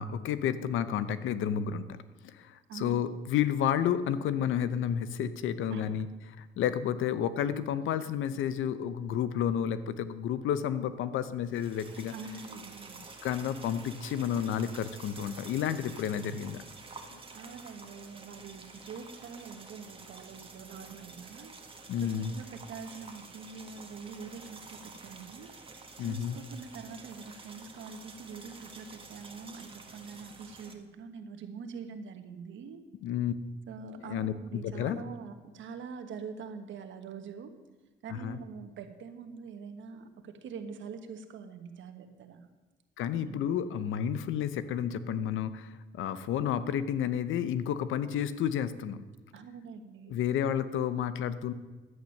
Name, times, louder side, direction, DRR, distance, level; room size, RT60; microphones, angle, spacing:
voice 1, 0.0-1.8 2.2-6.1 6.6-12.1 13.2-16.6 17.1-17.2 21.9-22.4 26.0-26.4 33.0-33.3 34.0-35.0 38.1-38.4 43.0-49.0 50.1-51.5, left 9 dB, 80° left, 13 dB, 0.8 m, -31 dB
voice 2, 2.7-3.1 5.7-5.9 12.1-13.0 17.3-21.5 22.0-32.8 33.7-37.5 38.0-42.4 43.2-43.4 49.3-50.1, right 5 dB, 75° right, 7 dB, 1.4 m, -44 dB
sound 1, 11.5-30.7, right 3 dB, 25° right, 1.7 m, -49 dB
11.0 x 8.7 x 6.5 m, 1.3 s
cardioid pair, 90°, 20 cm